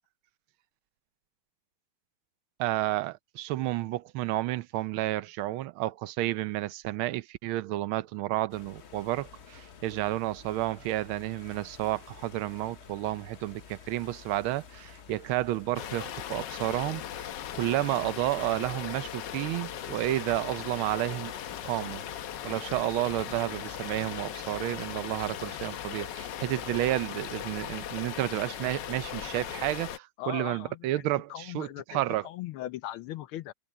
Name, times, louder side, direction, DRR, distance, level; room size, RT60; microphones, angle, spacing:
voice 1, 2.6-17.0 17.5-21.3 21.6-22.0 22.4-32.3, right 15 dB, 80° right, 1.5 m, -31 dB
sound 1, 8.5-28.0, left 6 dB, 50° left, 0.8 m, -51 dB
sound 2, 15.8-30.0, left 10 dB, 65° left, 1.4 m, -38 dB
voice 2, 30.2-33.5, left 14 dB, 85° left, 1.6 m, -39 dB
omnidirectional pair, 2.3 m